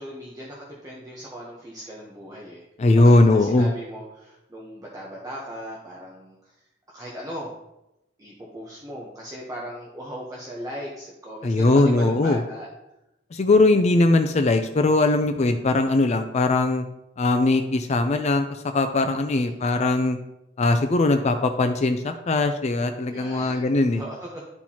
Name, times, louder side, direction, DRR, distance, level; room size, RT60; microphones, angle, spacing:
voice 1, 0.0-6.6 6.9-7.5 8.2-12.7 19.3-19.6 23.0-23.6 24.0-24.5, equal, 20° right, -4 dB, 0.9 m, -38 dB
voice 2, 2.8-3.7 11.4-12.4 13.3-16.8 17.2-20.2 20.6-24.0, left 2 dB, 35° left, 7 dB, 0.4 m, -20 dB
11.5 x 4.4 x 2.9 m, 0.92 s
head